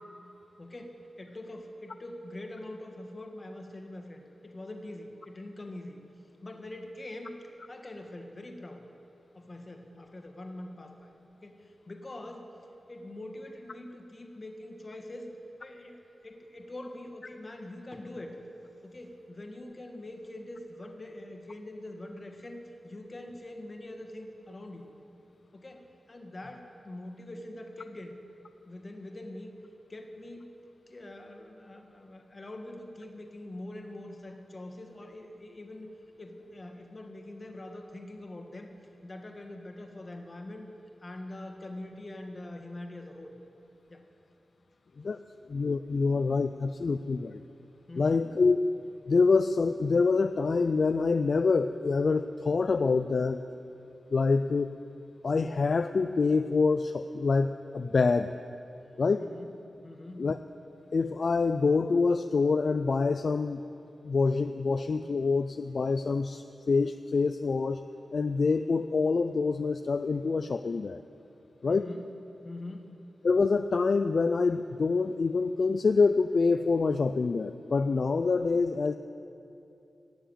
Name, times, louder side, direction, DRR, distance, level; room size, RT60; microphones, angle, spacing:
voice 1, 0.6-6.0 6.4-7.3 7.7-8.8 9.3-11.1 11.3-12.5 12.9-15.3 15.6-18.4 18.8-24.9 25.5-28.1 28.7-29.5 29.9-30.5 30.9-35.9 36.2-38.7 39.0-40.7 41.0-43.3 43.9-44.0 47.9-48.3 59.2-59.5 59.8-60.3 71.7-72.0 72.4-73.0, left 1 dB, 35° left, 4 dB, 1.5 m, -43 dB
voice 2, 45.5-47.4 48.0-48.6 49.1-53.4 54.1-54.7 55.2-58.4 59.0-59.3 60.2-60.4 60.9-63.6 64.0-67.8 68.1-71.0 71.6-71.9 73.2-78.9, left 4 dB, 55° left, 9 dB, 0.3 m, -26 dB
16.5 x 7.1 x 8.9 m, 2.7 s
wide cardioid pair, 110°, 0 cm